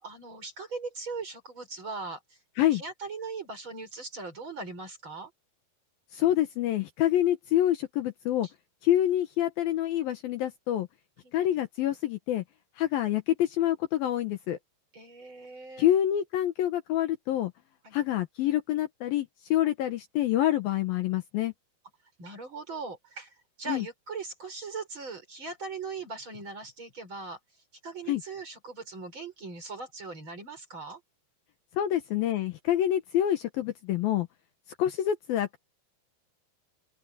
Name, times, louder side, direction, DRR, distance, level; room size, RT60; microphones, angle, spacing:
voice 1, 0.0-2.4 2.7-5.3 11.2-11.3 14.9-15.9 17.8-18.0 22.2-27.4 27.8-31.0, right 4 dB, 30° right, 6.2 m, -40 dB
voice 2, 6.1-8.5 8.8-10.9 11.3-12.4 12.8-14.6 15.8-17.5 17.9-21.5 23.7-23.8 28.1-28.2 31.8-34.3 34.8-35.6, left 12 dB, 70° left, 2.7 m, -27 dB
open air
omnidirectional pair, 4.8 m